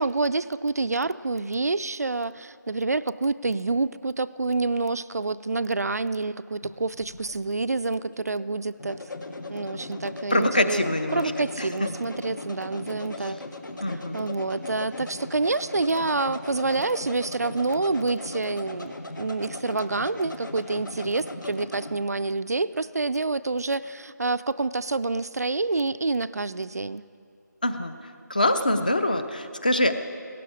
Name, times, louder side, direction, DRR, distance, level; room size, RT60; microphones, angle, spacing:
voice 1, 0.0-9.0 9.5-10.8 11.1-13.4 13.9-27.0, right 3 dB, 55° right, 14 dB, 0.4 m, -27 dB
sound 1, 6.6-22.0, left 2 dB, 80° left, 1.5 m, -38 dB
voice 2, 10.3-11.3 11.6-11.9 13.8-14.2 27.6-27.9 28.3-30.0, left 1 dB, 25° left, 8 dB, 0.5 m, -24 dB
17.0 x 12.5 x 4.8 m, 2.2 s
figure-of-eight pair, 175°, 10 cm